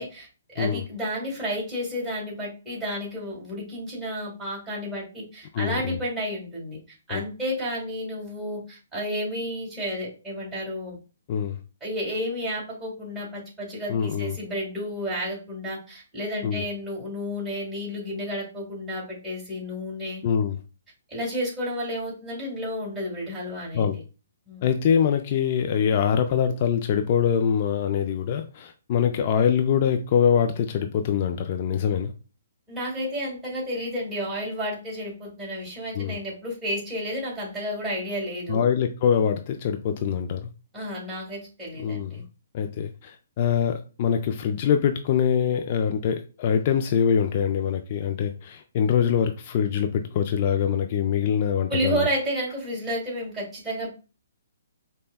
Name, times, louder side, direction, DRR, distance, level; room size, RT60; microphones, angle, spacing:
voice 1, 0.0-11.0 11.8-20.2 21.1-24.0 24.5-24.7 32.7-38.6 40.7-42.2 51.7-53.9, equal, 10° right, 1.8 m, -31 dB
voice 2, 5.5-6.0 7.1-7.2 11.3-11.6 13.9-14.4 16.4-16.6 20.2-20.6 23.7-24.0 24.6-32.1 35.9-36.2 38.5-40.5 41.8-42.2 42.5-52.1, left 8 dB, 45° left, 0.3 m, -24 dB
5.3 x 2.1 x 2.2 m
hypercardioid pair, 140°, 0 cm